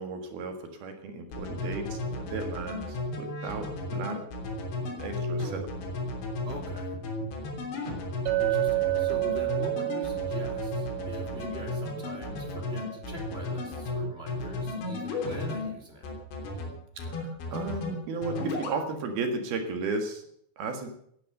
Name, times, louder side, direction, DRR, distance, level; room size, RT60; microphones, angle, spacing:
voice 1, 0.0-4.2 4.8-5.7 17.0-20.2 20.6-20.9, right 4 dB, 60° right, 6 dB, 3.3 m, -35 dB
sound 1, 1.3-15.7 16.0-16.7 17.0-17.9 18.2-18.8, left 2 dB, 65° left, 5.6 m, -34 dB
voice 2, 6.4-7.0 8.4-16.1, right 1 dB, 15° right, 1 dB, 2.9 m, -43 dB
Chink clink, 8.3-12.7, right 19 dB, 85° right, 2.1 m, -30 dB
17.5 x 11.0 x 6.7 m, 0.67 s
omnidirectional pair, 5.5 m